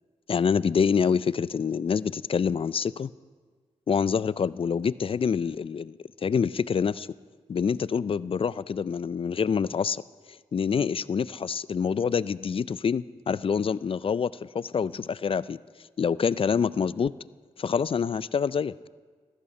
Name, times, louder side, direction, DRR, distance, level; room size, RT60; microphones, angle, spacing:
voice 1, 0.3-3.1 3.9-5.9 6.2-7.1 7.5-10.0 10.5-15.6 16.0-17.1 17.6-18.7, left 6 dB, 50° left, 19 dB, 0.4 m, -26 dB
14.0 x 14.0 x 5.4 m, 1.5 s
cardioid pair, 50°, 12 cm